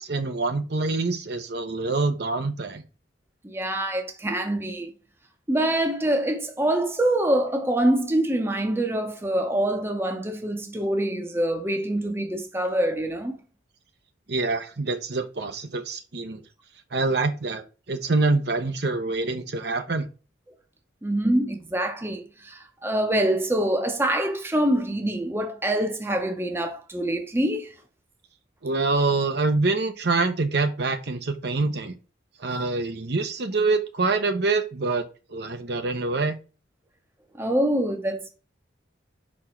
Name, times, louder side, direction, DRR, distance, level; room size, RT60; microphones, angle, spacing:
voice 1, 0.0-2.8 14.3-16.4 16.9-20.1 28.6-31.9 32.4-36.4, right 3 dB, 55° right, 0.8 m, -25 dB
voice 2, 3.4-4.9 5.5-13.4 21.0-27.7 37.3-38.3, right 1 dB, 10° right, 0.8 m, -25 dB
5.4 x 4.3 x 4.4 m
head